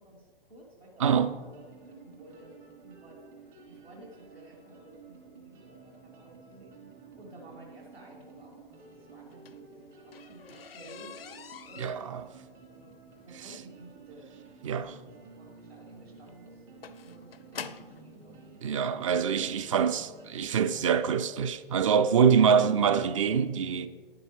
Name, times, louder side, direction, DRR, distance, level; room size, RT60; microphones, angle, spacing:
voice 1, 0.0-11.2 11.6-12.1 12.6-14.3 14.6-15.0 15.4-17.2 17.5-18.4 22.1-22.5, right 1 dB, 85° right, 2.7 m, -53 dB
voice 2, 1.0-1.3 11.8-12.2 14.6-14.9 18.6-23.9, right 7 dB, 35° right, 0.4 m, -25 dB
sound 1, 1.2-21.0, right 4 dB, 60° right, 3.1 m, -52 dB
sound 2, 9.2-18.1 19.0-19.1 19.6-19.8 20.1-20.2 20.5-20.6, left 7 dB, 75° left, 0.5 m, -47 dB
11.0 x 9.6 x 3.2 m
figure-of-eight pair, 115°, 30 cm